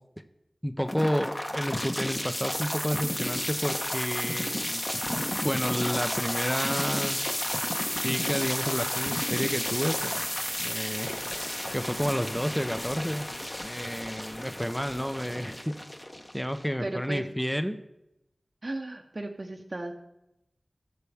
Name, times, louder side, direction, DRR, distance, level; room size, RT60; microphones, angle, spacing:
voice 1, 0.6-4.8 5.4-7.3 8.0-10.3 10.6-13.2 13.6-15.7 16.3-17.8, equal, 5° left, 8 dB, 0.6 m, -31 dB
sound 1, 0.9-16.9, left 1 dB, 25° left, 1.2 m, -32 dB
voice 2, 16.8-17.2 18.6-19.9, right 2 dB, 45° right, 3 dB, 0.9 m, -35 dB
18.5 x 6.7 x 3.5 m, 0.89 s
wide cardioid pair, 60°, 0 cm